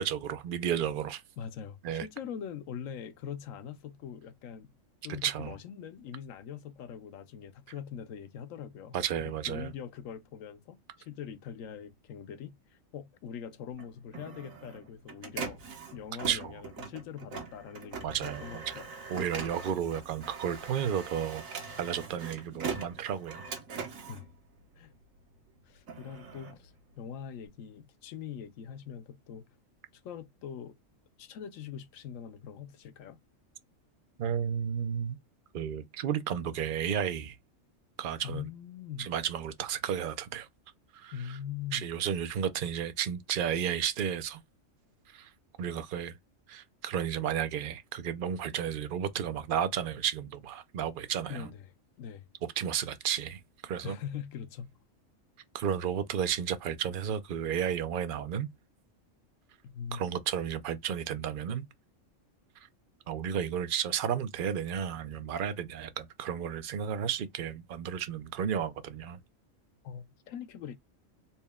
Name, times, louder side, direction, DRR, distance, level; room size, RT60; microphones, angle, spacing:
voice 1, 0.0-1.2 1.8-2.1 5.2-5.5 8.9-9.7 16.3-16.5 18.0-18.7 19.1-21.4 21.8-23.4 34.2-35.2 35.5-37.4 38.0-38.4 39.0-40.5 40.9-41.1 41.7-44.4 45.1-45.3 45.6-46.2 46.5-51.5 52.6-54.0 55.5-58.5 59.9-61.6 63.1-69.2, right 8 dB, 55° right, 0.6 m, -32 dB
voice 2, 1.4-4.7 5.0-15.6 15.9-18.9 24.1-24.3 24.7-24.9 25.6-29.5 30.0-30.8 31.2-33.2 38.2-39.1 41.1-41.9 51.3-51.7 52.0-52.2 53.8-54.7 59.6-60.0 69.8-70.8, left 8 dB, 90° left, 1.0 m, -42 dB
Printer, 13.7-25.2 25.6-27.5, right 5 dB, 85° right, 1.4 m, -42 dB
4.2 x 2.1 x 3.4 m
omnidirectional pair, 1.4 m